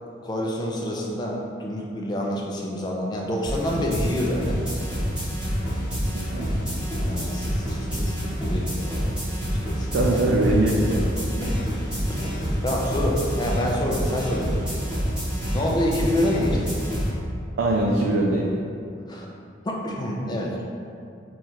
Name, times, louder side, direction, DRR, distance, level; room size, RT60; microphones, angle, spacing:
voice 1, 0.2-4.9 6.4-6.6 7.0-9.1 9.5-10.2 11.4-11.6 12.1-14.5 15.5-16.6 19.1-19.3 19.6-20.6, left 1 dB, 20° left, -2 dB, 0.4 m, -28 dB
sound 1, 3.4-17.1, equal, 5° right, 1.0 m, -27 dB
voice 2, 6.1-6.6 9.9-11.5 17.6-18.5, right 1 dB, 75° right, -3 dB, 0.3 m, -22 dB
3.0 x 2.4 x 4.1 m, 2.5 s
head